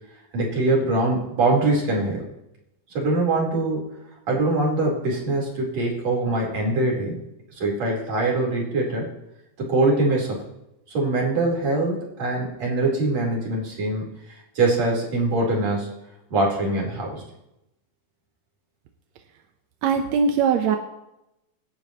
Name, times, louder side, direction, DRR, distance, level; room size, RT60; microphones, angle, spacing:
voice 1, 0.3-2.3 3.0-3.8 4.3-7.2 7.5-9.1 9.6-10.4 10.9-15.9 16.3-17.2, right 2 dB, 50° right, -2 dB, 5.4 m, -23 dB
voice 2, 19.8-20.8, right 6 dB, 65° right, 5 dB, 1.9 m, -20 dB
26.5 x 12.0 x 3.1 m, 0.87 s
omnidirectional pair, 3.8 m